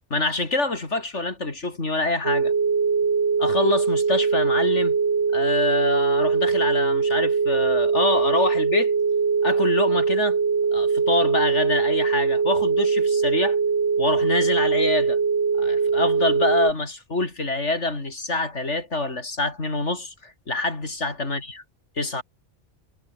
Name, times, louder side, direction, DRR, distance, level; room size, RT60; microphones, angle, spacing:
voice 1, 0.1-2.5 3.4-5.0 5.3-8.9 9.4-10.4 10.7-13.6 14.0-15.2 15.6-21.5 22.0-22.2, left 2 dB, 80° left, 4.3 m, -26 dB
sound 1, 2.2-16.7, right 5 dB, 70° right, 2.0 m, -22 dB
omnidirectional pair, 1.2 m